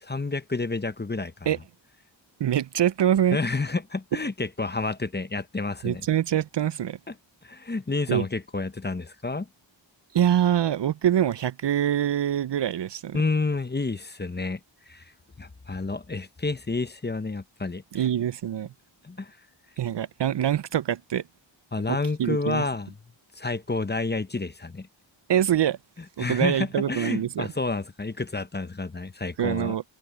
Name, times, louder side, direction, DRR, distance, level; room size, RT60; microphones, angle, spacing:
voice 1, 0.0-1.5 3.3-6.1 7.1-7.2 7.4-9.5 13.1-14.6 14.9-15.1 15.4-18.1 19.0-19.4 21.7-22.9 23.3-24.9 26.2-29.8, left 3 dB, 20° left, 0.8 m, -30 dB
voice 2, 2.4-3.4 5.8-7.0 8.1-8.2 10.1-13.2 17.9-18.7 19.8-21.2 22.2-22.6 25.3-25.8 26.2-27.5 29.4-29.8, right 10 dB, 60° right, 0.5 m, -24 dB
wide cardioid pair, 80°, 47 cm